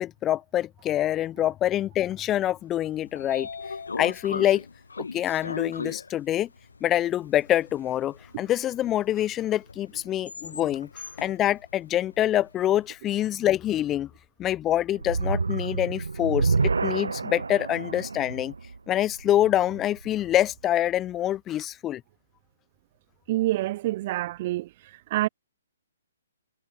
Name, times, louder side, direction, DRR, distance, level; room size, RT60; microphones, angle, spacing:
voice 1, 0.0-3.5 4.0-4.6 5.0-6.5 6.8-14.1 14.4-16.5 16.8-18.5 18.9-22.0, left 12 dB, 20° left, 1.0 m, -25 dB
Train / Sliding door, 2.7-12.9, left 4 dB, 70° left, 1.0 m, -39 dB
sound 1, 15.0-20.3, right 4 dB, 75° right, 0.7 m, -29 dB
voice 2, 23.3-24.7 25.1-25.3, right 16 dB, 40° right, 0.6 m, -26 dB
figure-of-eight pair, 130°, 0 cm